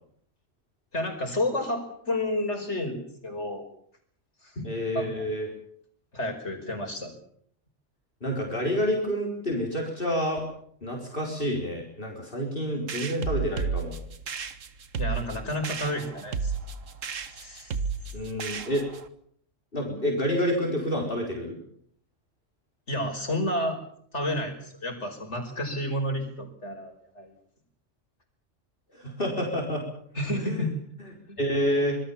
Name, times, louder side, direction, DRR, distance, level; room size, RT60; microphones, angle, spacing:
voice 1, 0.9-3.7 4.4-5.3 6.1-7.1 15.0-16.5 17.3-17.7 22.9-23.8 24.1-27.3 30.1-30.7 31.3-31.4, left 1 dB, 60° left, 5 dB, 5.5 m, -31 dB
voice 2, 4.6-5.5 8.2-10.4 10.8-13.9 18.1-18.9 19.7-21.6 29.0-29.8 30.3-30.7 31.4-32.0, equal, 45° left, 1 dB, 4.6 m, -28 dB
sound 1, 12.9-19.1, right 5 dB, 80° right, 1.8 m, -33 dB
26.0 x 19.5 x 7.2 m, 0.64 s
omnidirectional pair, 1.3 m